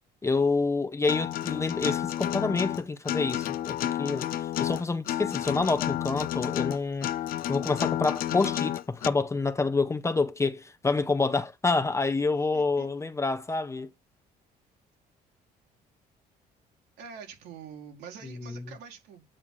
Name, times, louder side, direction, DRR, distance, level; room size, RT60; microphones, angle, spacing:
voice 1, 0.2-7.1 7.5-13.9 18.4-18.6, left 3 dB, 15° left, 0.6 m, -28 dB
Acoustic guitar, 1.1-9.1, left 12 dB, 60° left, 0.4 m, -31 dB
voice 2, 12.3-12.9 17.0-19.2, right 7 dB, 80° right, 2.2 m, -46 dB
8.7 x 3.6 x 6.2 m
cardioid pair, 110°, 17 cm